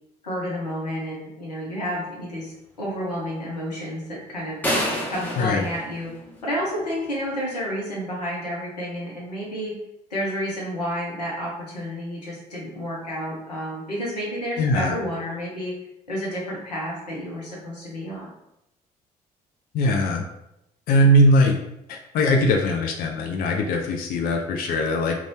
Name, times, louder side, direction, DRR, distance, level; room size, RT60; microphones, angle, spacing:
voice 1, 0.2-2.5 2.8-4.6 5.1-6.1 6.4-9.7 10.1-15.7 16.1-18.3, equal, 85° left, -4 dB, 0.7 m, -30 dB
sound 1, 4.6-6.8, equal, 10° left, 0.8 m, -28 dB
voice 2, 14.6-14.9 19.7-20.2 20.9-21.5 21.9-25.2, equal, 45° left, 2 dB, 0.4 m, -20 dB
2.5 x 2.3 x 3.2 m, 0.85 s
figure-of-eight pair, 45°, 20 cm